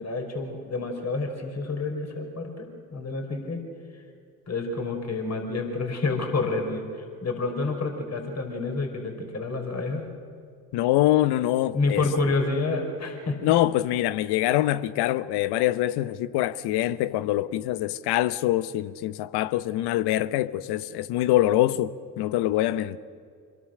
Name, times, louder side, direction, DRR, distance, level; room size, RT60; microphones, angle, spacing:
voice 1, 0.0-3.6 4.5-10.1 11.7-13.5, left 3 dB, 35° left, 5.1 m, -29 dB
voice 2, 10.7-12.0 13.4-23.0, left 14 dB, 65° left, 1.0 m, -24 dB
26.5 x 21.5 x 6.7 m
hypercardioid pair, 55°, 44 cm